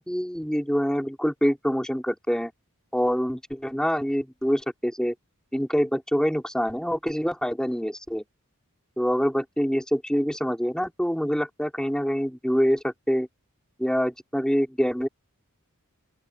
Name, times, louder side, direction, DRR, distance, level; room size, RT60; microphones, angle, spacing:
voice 1, 0.0-2.5 2.9-5.1 5.5-8.2 9.0-13.3 13.8-15.1, equal, 5° left, 4.3 m, -25 dB
open air
head